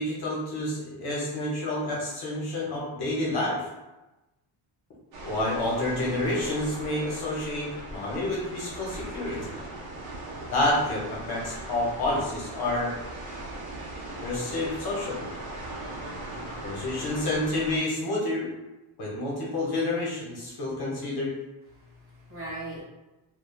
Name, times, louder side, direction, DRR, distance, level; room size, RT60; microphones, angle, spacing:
voice 1, 0.0-3.7 5.2-9.5 10.5-12.9 14.2-15.2 16.6-18.5 19.0-21.3, left 1 dB, 55° left, -4 dB, 0.7 m, -29 dB
sound 1, 5.1-17.8, right 2 dB, 50° right, 0.6 m, -39 dB
voice 2, 16.1-16.6 20.7-20.8 21.7-22.8, right 2 dB, 25° right, -9 dB, 1.4 m, -41 dB
3.0 x 2.0 x 2.3 m, 1.0 s
cardioid pair, 160°, 48 cm